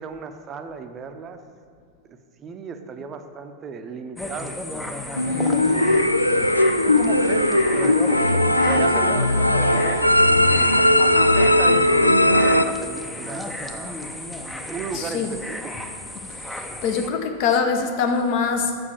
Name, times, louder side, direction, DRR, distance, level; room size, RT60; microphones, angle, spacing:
voice 1, 0.0-1.4 2.4-4.6 5.6-6.5 6.8-8.4 8.7-10.8 11.2-14.0 14.7-15.7, right 5 dB, 25° right, 7 dB, 0.7 m, -35 dB
sound 1, 4.2-17.1, left 1 dB, 5° left, 0.7 m, -33 dB
sound 2, 5.2-12.6, left 1 dB, 85° left, 0.3 m, -18 dB
voice 2, 5.2-5.9 14.9-15.3 16.4-18.8, left 5 dB, 45° left, 5 dB, 0.9 m, -24 dB
7.4 x 6.4 x 7.0 m, 2.2 s
figure-of-eight pair, 90°, 0 cm